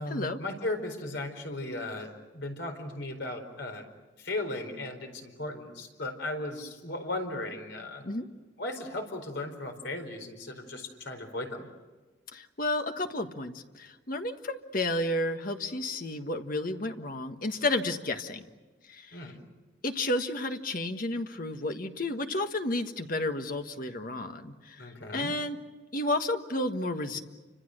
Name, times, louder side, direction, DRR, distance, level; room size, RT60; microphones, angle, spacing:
voice 1, 0.0-3.9 4.2-8.1 8.6-11.7 19.1-19.4 24.8-25.3, left 2 dB, 65° left, 4 dB, 4.5 m, -36 dB
voice 2, 12.3-18.4 18.9-19.2 19.8-24.9 25.1-25.6 25.9-27.2, left 2 dB, 50° left, 6 dB, 1.5 m, -31 dB
29.0 x 26.0 x 6.6 m, 1.2 s
head